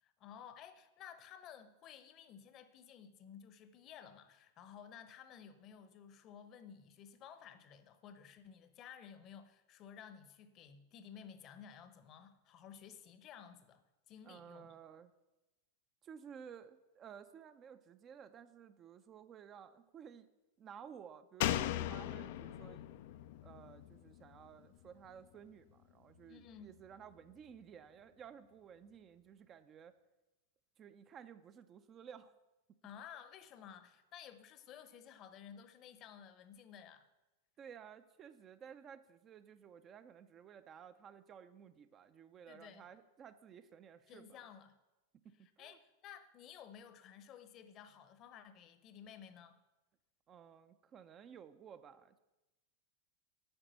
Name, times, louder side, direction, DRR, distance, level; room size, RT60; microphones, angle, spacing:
voice 1, 0.0-14.8 26.3-26.7 32.8-37.1 42.5-42.8 44.1-44.8 45.4-49.6, left 8 dB, 35° left, 0.9 m, -55 dB
voice 2, 14.3-15.1 16.0-20.3 20.6-22.8 23.4-29.9 30.8-32.3 37.6-44.4 45.2-45.8 50.3-52.2, right 8 dB, 30° right, 0.5 m, -55 dB
Slam, 21.4-24.9 25.2-25.3, left 13 dB, 50° left, 0.4 m, -39 dB
8.9 x 6.0 x 8.0 m
figure-of-eight pair, 90°, 0 cm